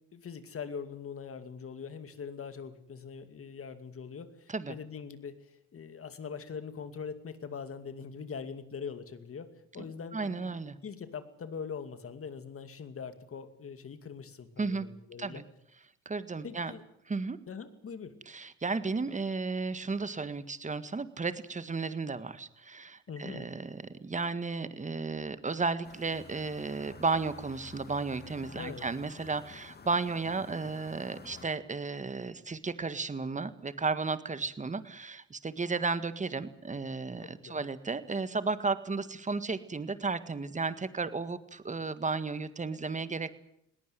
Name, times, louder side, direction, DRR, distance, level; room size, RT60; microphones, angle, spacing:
voice 1, 0.1-10.6 10.8-15.4 16.4-16.8 17.5-18.2 23.1-23.5 28.5-28.8 37.2-37.6, left 6 dB, 45° left, 11 dB, 2.4 m, -42 dB
voice 2, 10.1-10.8 14.6-14.9 15.2-15.4 16.0-16.7 17.1-17.4 18.3-43.4, right 4 dB, 25° right, 13 dB, 1.7 m, -34 dB
sound 1, 25.8-31.5, left 5 dB, 30° left, 2.0 m, -50 dB
20.5 x 18.0 x 9.5 m, 0.75 s
cardioid pair, 90°, 30 cm